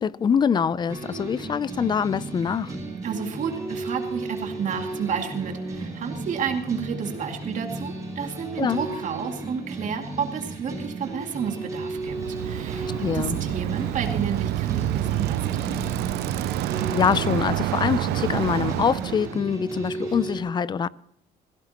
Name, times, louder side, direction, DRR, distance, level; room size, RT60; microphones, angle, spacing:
voice 1, 0.0-2.7 8.6-8.8 13.0-13.4 16.9-20.9, left 7 dB, 25° left, 0.4 m, -24 dB
sound 1, 0.9-20.4, right 2 dB, 20° right, 5.7 m, -34 dB
voice 2, 3.0-12.9 13.1-15.9, right 7 dB, 50° right, 2.3 m, -31 dB
Bicycle, 11.9-19.4, right 16 dB, 85° right, 0.4 m, -28 dB
17.5 x 16.0 x 2.9 m
cardioid pair, 135°, 17 cm